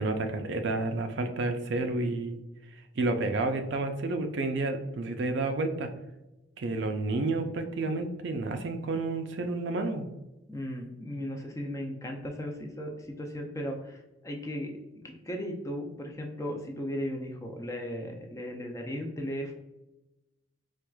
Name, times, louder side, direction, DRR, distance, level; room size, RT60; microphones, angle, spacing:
voice 1, 0.0-2.4 3.0-5.9 6.6-10.1, right 2 dB, 60° right, 6 dB, 0.4 m, -30 dB
voice 2, 10.5-19.6, equal, 15° left, 2 dB, 0.4 m, -36 dB
4.4 x 2.4 x 2.2 m, 0.98 s
head